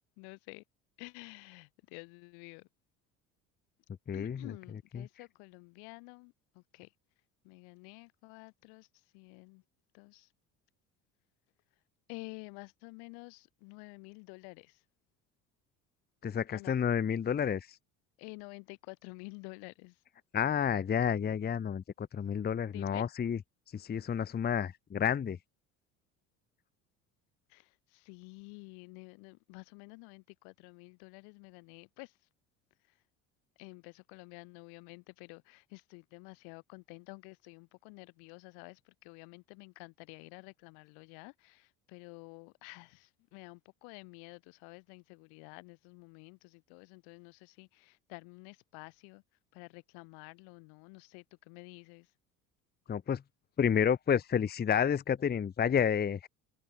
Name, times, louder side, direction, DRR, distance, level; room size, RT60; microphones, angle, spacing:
voice 1, 0.2-0.6 1.0-2.7 4.1-6.9 7.4-8.9 9.1-9.6 9.9-10.3 12.1-14.8 16.5-16.8 18.2-20.0 22.6-23.0 27.5-32.1 33.6-49.2 49.5-52.1, left 36 dB, 65° left, 1.8 m, -50 dB
voice 2, 4.1-4.5 4.9-5.1 16.2-17.8 20.3-23.4 23.7-25.4 52.9-53.2 53.6-56.3, left 8 dB, 25° left, 0.8 m, -30 dB
hypercardioid pair, 60°, 41 cm